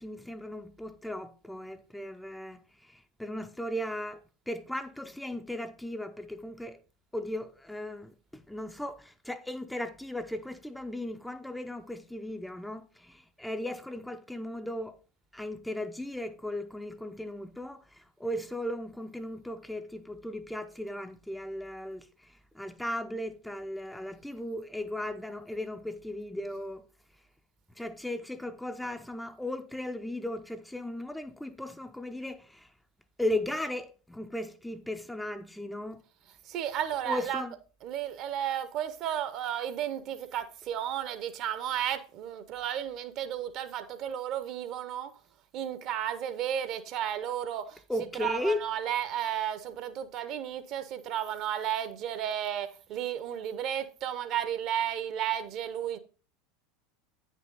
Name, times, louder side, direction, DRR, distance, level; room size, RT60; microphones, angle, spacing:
voice 1, 0.0-6.8 7.1-15.0 15.3-26.8 27.8-32.7 33.2-36.0 37.0-37.5 47.9-48.6, left 1 dB, 5° left, 0.6 m, -36 dB
voice 2, 36.5-37.5 37.8-45.2 45.5-56.0, right 10 dB, 45° right, 0.9 m, -33 dB
9.1 x 5.6 x 3.9 m
figure-of-eight pair, 75°, 0 cm